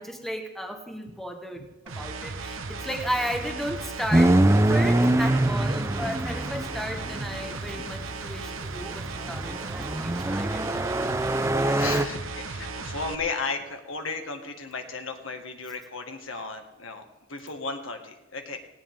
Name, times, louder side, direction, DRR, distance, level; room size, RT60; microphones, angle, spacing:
voice 1, 0.0-10.9, equal, ahead, 3 dB, 1.4 m, -34 dB
sound 1, 1.9-13.1, right 3 dB, 85° right, 1.2 m, -36 dB
sound 2, 4.1-7.6 8.8-12.1, right 1 dB, 15° right, 0.5 m, -24 dB
voice 2, 11.2-17.0 17.3-18.6, left 4 dB, 75° left, 5 dB, 1.9 m, -35 dB
18.5 x 16.5 x 3.7 m, 1.1 s
head